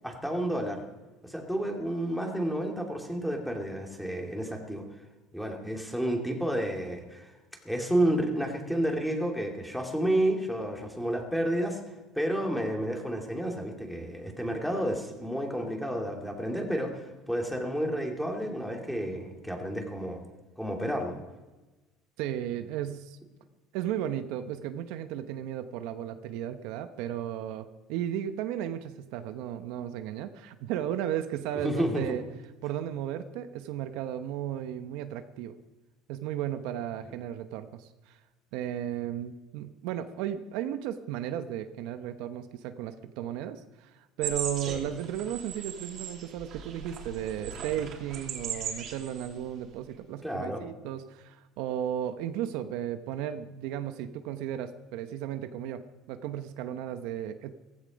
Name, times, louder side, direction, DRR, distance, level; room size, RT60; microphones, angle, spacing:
voice 1, 0.0-0.8 1.2-4.8 5.3-7.3 7.6-11.8 12.1-20.2 20.6-21.2 31.6-32.2 44.7-44.8 50.2-50.6, right 1 dB, ahead, 1 dB, 2.6 m, -30 dB
voice 2, 22.2-23.2 23.7-32.2 32.6-35.6 36.1-38.2 38.5-55.8 56.1-57.5, right 10 dB, 75° right, 9 dB, 0.9 m, -35 dB
sound 1, 44.2-49.4 49.6-49.8, right 7 dB, 50° right, 3.0 m, -38 dB
15.5 x 15.0 x 5.2 m, 1.1 s
cardioid pair, 125°, 0 cm